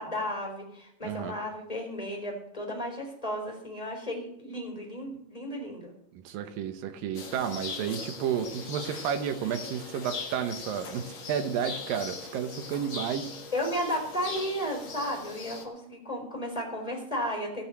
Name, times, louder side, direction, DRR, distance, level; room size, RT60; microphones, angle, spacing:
voice 1, 0.0-5.9 13.5-17.6, equal, 10° left, 1 dB, 3.4 m, -34 dB
voice 2, 1.0-1.3 6.1-13.4, right 8 dB, 70° right, 8 dB, 2.6 m, -32 dB
sound 1, 7.1-15.6, left 4 dB, 45° left, 1.6 m, -40 dB
18.0 x 6.2 x 7.5 m, 0.77 s
omnidirectional pair, 4.5 m